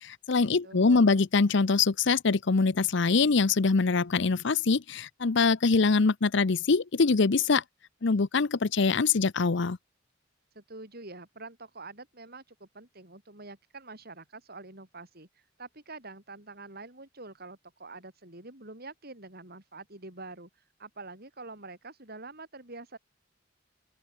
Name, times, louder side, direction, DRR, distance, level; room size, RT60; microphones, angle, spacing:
voice 1, 0.0-7.6 8.0-9.8, left 4 dB, 65° left, 0.7 m, -24 dB
voice 2, 0.6-1.3 10.6-20.5 20.8-23.0, right 3 dB, 50° right, 7.0 m, -46 dB
open air
head